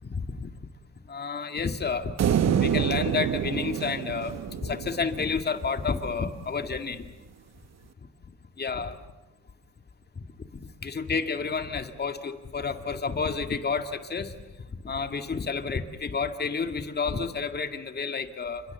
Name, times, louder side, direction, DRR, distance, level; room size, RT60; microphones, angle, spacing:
voice 1, 0.0-0.5 1.1-2.1 2.4-7.1 8.6-9.0 10.8-14.4 14.8-18.6, left 5 dB, 35° left, 8 dB, 2.0 m, -30 dB
sound 1, 2.2-5.6, right 9 dB, 60° right, 1.1 m, -27 dB
28.5 x 26.5 x 7.0 m, 1.1 s
cardioid pair, 90°, 30 cm